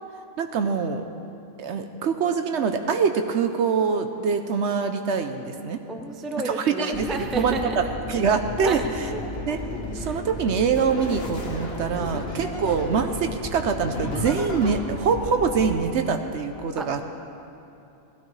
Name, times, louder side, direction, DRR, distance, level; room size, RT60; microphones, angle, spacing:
voice 1, 0.4-1.0 1.6-5.8 6.4-8.8 9.5-9.6 9.9-17.0, right 5 dB, 65° right, 7 dB, 0.8 m, -24 dB
voice 2, 5.9-8.0 8.6-9.2 9.7-10.2 12.0-12.4 16.8-17.0, right 2 dB, ahead, 3 dB, 0.4 m, -33 dB
sound 1, 6.9-15.8, left 1 dB, 30° left, 2.2 m, -35 dB
sound 2, 9.2-10.1 10.7-13.1 13.8-14.8, left 2 dB, 45° left, 1.6 m, -36 dB
19.0 x 12.5 x 3.2 m, 2.8 s
omnidirectional pair, 1.4 m